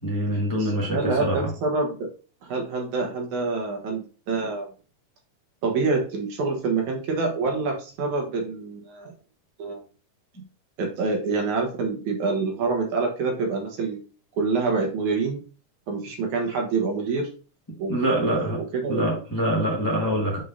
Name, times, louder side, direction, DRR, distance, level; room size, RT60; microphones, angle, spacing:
voice 1, 0.0-1.5 17.9-18.6 18.9-20.4, equal, 15° left, 0.7 m, -25 dB
voice 2, 0.6-2.1 2.4-4.7 5.6-9.1 9.6-9.8 10.8-14.0 14.4-15.4 15.9-17.3 17.8-19.2, right 4 dB, 65° right, 2.6 m, -26 dB
8.1 x 4.8 x 2.7 m
omnidirectional pair, 3.8 m